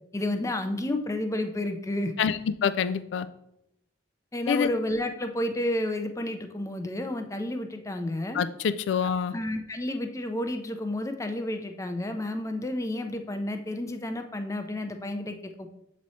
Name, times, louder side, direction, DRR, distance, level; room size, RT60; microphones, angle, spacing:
voice 1, 0.1-2.1 4.3-8.4 9.0-15.7, left 1 dB, 15° left, 7 dB, 0.5 m, -31 dB
voice 2, 2.2-3.3 4.5-4.7 8.3-9.3, left 7 dB, 80° left, 14 dB, 0.3 m, -26 dB
7.5 x 3.1 x 4.1 m, 0.80 s
head